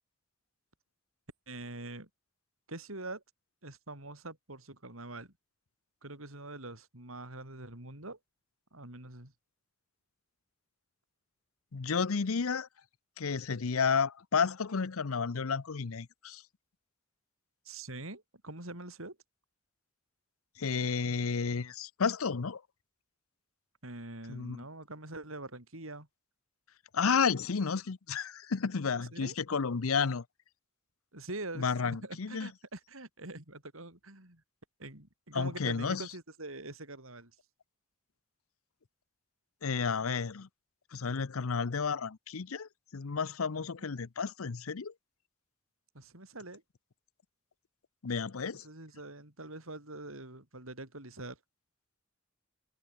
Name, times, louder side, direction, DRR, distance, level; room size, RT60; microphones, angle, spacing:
voice 1, 1.5-2.1 2.7-3.2 3.6-5.3 6.0-8.2 8.7-9.3 17.6-19.2 23.8-26.1 29.1-29.3 31.1-34.4 34.8-37.3 43.5-43.9 45.9-46.6 48.6-51.4, right 2 dB, 75° right, 6.1 m, -44 dB
voice 2, 11.7-12.7 13.2-16.4 20.6-22.6 24.3-24.6 26.9-30.2 31.6-32.5 35.3-36.0 39.6-40.5 40.9-44.9 48.0-48.6, left 5 dB, 85° left, 0.7 m, -32 dB
head